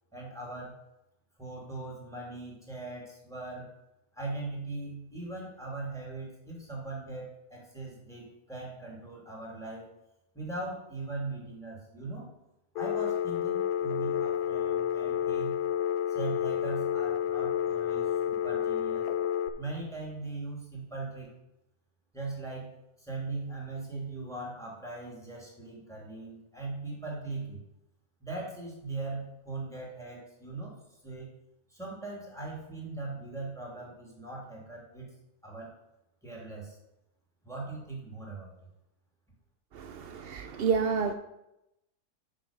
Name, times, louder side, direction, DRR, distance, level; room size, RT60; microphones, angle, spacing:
voice 1, 0.1-0.8 1.4-3.7 4.1-9.9 10.3-12.3 12.7-15.6 16.1-19.1 19.6-21.3 22.1-22.7 23.0-27.6 28.2-30.7 31.0-31.3 31.7-35.1 35.4-35.7 36.2-36.8 37.4-38.5, right 3 dB, ahead, -3 dB, 2.8 m, -40 dB
Telephone, 12.7-19.5, left 9 dB, 90° left, 1.3 m, -30 dB
voice 2, 39.7-41.1, right 5 dB, 85° right, 8 dB, 0.5 m, -29 dB
8.6 x 6.2 x 5.3 m, 0.89 s
omnidirectional pair, 1.7 m